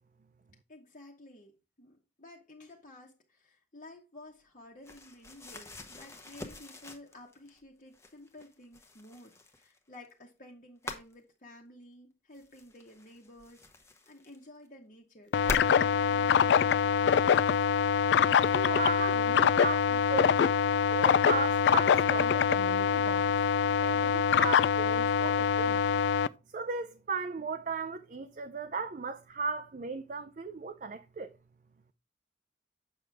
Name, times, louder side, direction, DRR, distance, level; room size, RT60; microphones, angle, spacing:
voice 1, 0.7-1.5 1.8-17.3, left 1 dB, 45° left, 1.2 m, -53 dB
sound 1, 4.8-7.6 7.9-10.1 10.8-11.1 12.3-14.7 15.4-15.7 16.7-16.8 17.2-18.0, left 1 dB, 15° left, 0.9 m, -44 dB
sound 2, 15.3-26.3, left 7 dB, 75° left, 0.3 m, -25 dB
voice 2, 18.5-20.3 20.9-23.3 23.8-25.8 26.5-31.3, right 4 dB, 50° right, 0.5 m, -36 dB
7.8 x 6.2 x 3.4 m
head